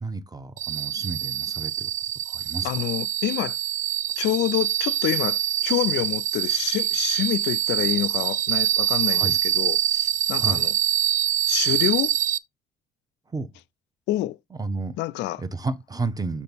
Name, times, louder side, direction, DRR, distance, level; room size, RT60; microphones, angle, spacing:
voice 1, 0.0-1.9 2.3-2.7 9.0-9.4 10.4-10.6 13.3-13.5 14.6-14.9 15.4-16.4, right 3 dB, 20° right, 0.9 m, -31 dB
sound 1, 0.6-12.4, right 11 dB, 40° right, 0.4 m, -25 dB
voice 2, 2.6-3.6 4.2-10.8 11.5-12.2 14.1-14.4 15.0-15.4, left 15 dB, 60° left, 0.4 m, -27 dB
6.7 x 3.6 x 4.0 m
hypercardioid pair, 55°, 20 cm